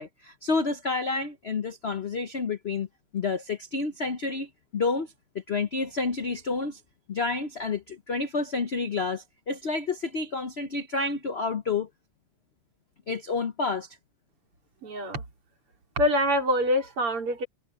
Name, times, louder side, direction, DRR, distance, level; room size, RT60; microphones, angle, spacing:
voice 1, 0.0-2.9 3.1-5.1 5.3-6.8 7.1-11.9 13.1-14.0, left 4 dB, 65° left, 0.6 m, -29 dB
voice 2, 14.8-15.2 16.0-17.5, equal, 80° right, 4.2 m, -25 dB
omnidirectional pair, 2.4 m